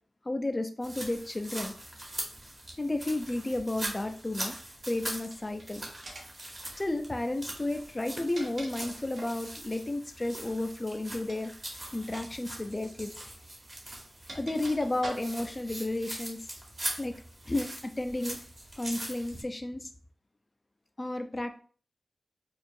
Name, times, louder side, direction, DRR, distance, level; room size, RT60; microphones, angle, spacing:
voice 1, 0.2-1.7 2.8-4.5 4.9-5.8 6.8-11.5 11.9-13.1 14.3-16.4 17.0-17.1 17.5-18.4 18.8-19.9 21.0-21.6, left 2 dB, 20° left, 7 dB, 0.4 m, -32 dB
sound 1, 0.8-19.4, right 1 dB, 25° right, 0.9 m, -42 dB
sound 2, 5.3-5.6 6.0-6.4 7.9-9.4 11.2-11.5 12.0-12.3 12.5-12.7 13.6-15.6, right 1 dB, 65° right, 1.0 m, -45 dB
4.6 x 2.4 x 2.6 m, 0.43 s
wide cardioid pair, 145°, 0 cm